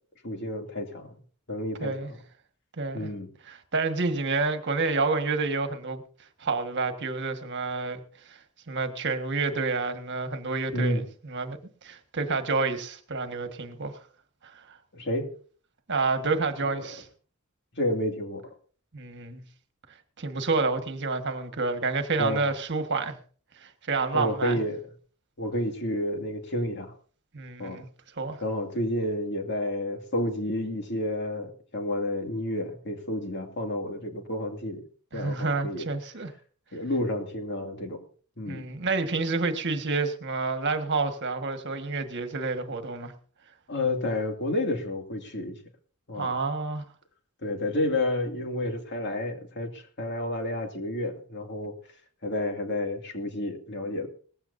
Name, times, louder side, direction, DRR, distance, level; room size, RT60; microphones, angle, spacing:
voice 1, 0.2-1.1 1.5-2.2 2.9-3.3 10.7-11.0 14.9-15.3 16.7-17.0 17.8-18.5 22.2-22.5 24.1-24.8 25.4-26.9 27.6-27.8 28.4-34.8 35.1-35.9 36.7-38.0 38.4-38.7 43.7-45.6 46.1-46.3 47.4-51.7 52.2-54.1, left 1 dB, 55° left, 2.5 m, -30 dB
voice 2, 2.8-3.1 3.4-6.0 6.4-8.0 8.3-8.4 8.7-13.9 14.4-14.8 15.9-17.1 18.9-19.4 20.2-23.2 23.6-24.6 27.3-27.9 28.2-28.4 35.1-36.3 38.5-43.1 46.2-46.8, right 3 dB, 55° right, 1.7 m, -29 dB
19.5 x 15.5 x 2.7 m
head